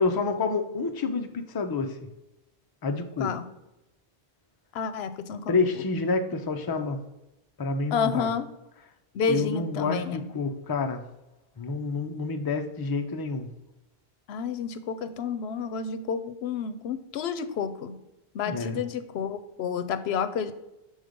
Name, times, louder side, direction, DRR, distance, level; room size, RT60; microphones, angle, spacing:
voice 1, 0.0-2.0 2.8-3.3 5.5-7.0 7.6-8.3 9.3-11.0 11.6-13.5 18.4-18.8, left 4 dB, 30° left, 6 dB, 0.5 m, -28 dB
voice 2, 4.7-5.6 7.9-8.5 9.1-10.3 14.3-18.0 18.3-20.5, left 6 dB, 90° left, 11 dB, 0.8 m, -30 dB
6.5 x 3.9 x 5.1 m, 0.94 s
omnidirectional pair, 1.0 m